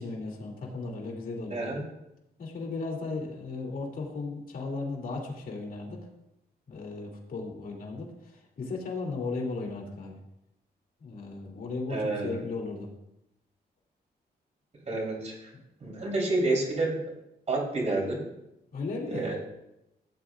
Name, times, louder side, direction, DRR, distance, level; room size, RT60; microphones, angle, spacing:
voice 1, 0.0-1.8 2.4-6.0 6.7-10.2 11.0-12.9 18.7-19.3, left 3 dB, 60° left, -2 dB, 2.6 m, -36 dB
voice 2, 1.5-1.8 11.9-12.4 14.9-15.5 15.8-17.0 17.5-18.2 19.1-19.4, right 2 dB, 40° right, -2 dB, 3.8 m, -29 dB
16.5 x 8.2 x 2.5 m, 0.88 s
wide cardioid pair, 130°, 17 cm